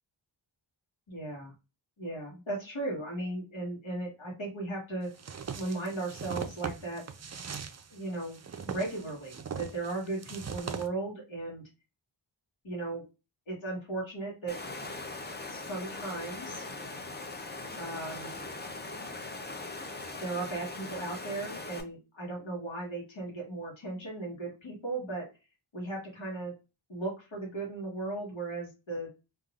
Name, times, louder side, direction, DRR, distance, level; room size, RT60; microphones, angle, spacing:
voice 1, 1.1-1.5 2.0-5.1 5.5-7.0 7.9-8.4 8.7-11.6 12.6-13.0 13.5-14.6 15.5-16.7 17.8-18.3 20.2-25.3 25.7-26.5 26.9-29.1, right 2 dB, 75° left, -3 dB, 1.3 m, -36 dB
sound 1, 5.2-10.9, right 6 dB, 35° right, 0.4 m, -40 dB
Water, 14.5-21.8, left 2 dB, 20° left, 0.6 m, -40 dB
3.3 x 2.5 x 2.4 m, 0.28 s
wide cardioid pair, 55°, 47 cm